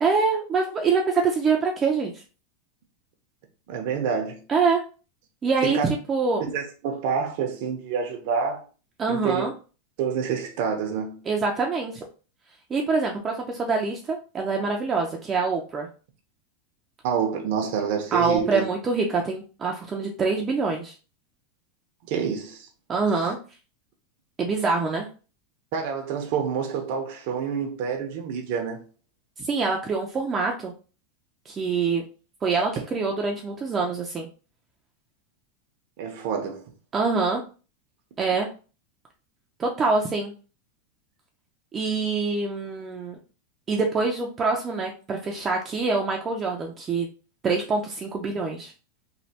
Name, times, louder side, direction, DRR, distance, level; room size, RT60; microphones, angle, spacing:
voice 1, 0.0-2.1 4.5-4.8 5.4-5.8 6.1-6.4 9.0-9.5 11.3-12.0 12.7-15.9 18.1-20.9 22.9-23.4 24.4-25.1 29.4-30.7 31.5-32.0 32.4-34.3 36.9-37.4 38.2-38.5 39.6-40.3 41.7-43.2 43.7-47.1 47.4-48.7, right 4 dB, 20° right, 0.5 m, -25 dB
voice 2, 3.7-4.4 5.6-5.9 6.4-8.6 9.1-9.5 10.0-11.2 17.0-18.6 22.1-22.7 23.1-23.3 25.7-28.8 32.4-32.5 36.0-36.6, right 6 dB, 55° right, 0.7 m, -28 dB
3.2 x 2.1 x 2.8 m
supercardioid pair, 140°, 0 cm